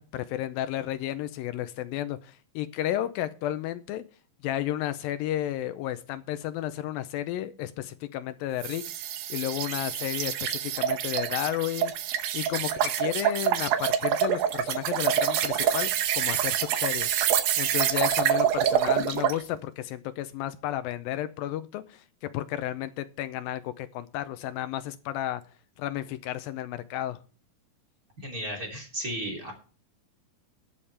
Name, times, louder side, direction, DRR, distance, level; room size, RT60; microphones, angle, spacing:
voice 1, 0.0-4.0 4.4-11.9 12.3-25.4 25.8-27.2, left 13 dB, 80° left, 11 dB, 2.3 m, -32 dB
sound 1, 8.6-19.4, right 10 dB, 80° right, 2.7 m, -26 dB
voice 2, 28.2-29.5, right 1 dB, 25° right, 1 dB, 3.1 m, -34 dB
20.5 x 7.2 x 3.3 m, 0.38 s
omnidirectional pair, 4.2 m